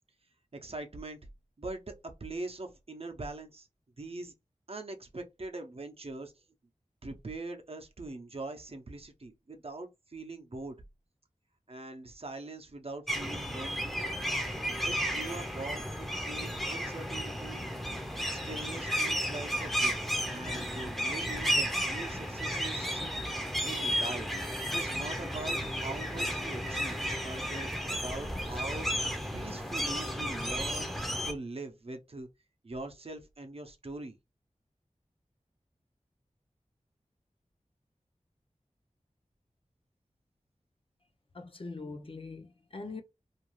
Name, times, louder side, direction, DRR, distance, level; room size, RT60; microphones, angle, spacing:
voice 1, 0.5-1.2 1.6-3.7 4.0-4.3 4.7-6.3 7.0-10.8 11.7-14.0 14.8-17.6 18.3-20.0 20.3-23.1 23.6-24.3 24.7-29.1 29.3-30.9 31.3-32.3 32.6-34.2, right 2 dB, 50° right, 0.6 m, -42 dB
sound 1, 13.1-31.3, equal, ahead, 0.6 m, -33 dB
voice 2, 41.3-43.0, left 3 dB, 45° left, 0.5 m, -42 dB
2.5 x 2.3 x 3.0 m
wide cardioid pair, 55°, 13 cm